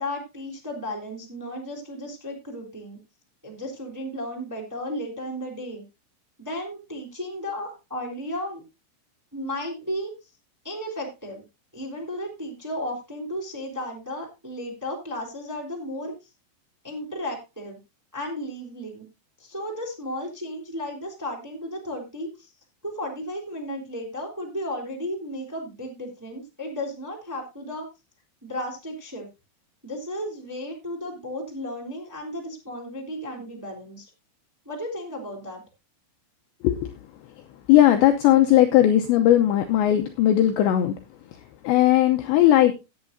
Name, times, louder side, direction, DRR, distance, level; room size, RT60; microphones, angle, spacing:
voice 1, 0.0-3.0 3.4-5.8 6.4-8.6 9.3-10.3 10.6-11.4 11.7-16.1 16.8-17.8 18.1-19.0 19.4-22.5 22.8-27.9 28.4-29.3 29.8-34.1 34.6-35.6, left 1 dB, 5° right, -1 dB, 2.2 m, -34 dB
voice 2, 37.7-40.9 41.6-42.7, left 12 dB, 80° left, 5 dB, 2.7 m, -18 dB
17.5 x 8.8 x 2.6 m, 0.26 s
omnidirectional pair, 5.9 m